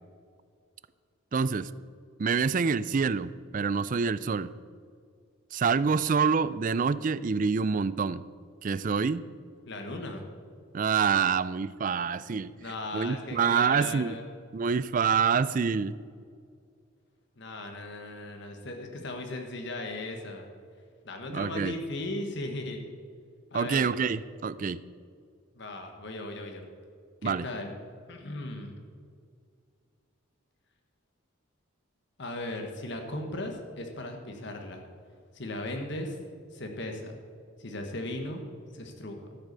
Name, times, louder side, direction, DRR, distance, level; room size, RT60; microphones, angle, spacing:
voice 1, 1.3-1.7 2.2-4.5 5.5-8.2 8.6-9.2 10.7-12.5 12.9-14.1 14.5-15.9 21.3-21.8 23.5-24.8 27.2-27.5, right 5 dB, 40° right, 17 dB, 0.4 m, -26 dB
voice 2, 9.6-10.2 12.6-14.2 17.4-20.5 21.0-22.9 23.5-23.9 25.5-26.7 27.2-27.7 28.1-28.7 32.2-34.9 35.3-36.2 36.5-37.2 37.6-38.4 38.7-39.4, left 1 dB, 55° left, 3 dB, 1.3 m, -37 dB
13.5 x 8.1 x 6.7 m, 2.2 s
head